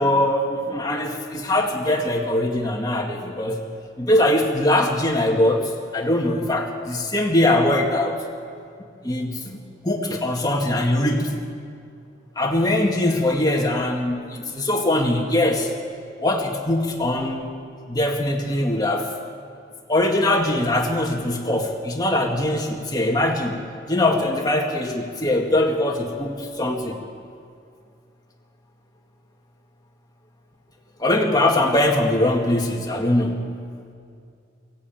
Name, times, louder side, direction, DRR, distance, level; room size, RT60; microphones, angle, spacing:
voice 1, 0.0-3.6 4.0-8.2 9.0-9.6 9.8-11.3 12.4-15.7 16.2-17.5 17.9-19.1 19.9-23.6 23.9-27.1 31.0-33.5, left 1 dB, 20° left, 1 dB, 1.9 m, -22 dB
23.5 x 16.5 x 9.1 m, 2.4 s
head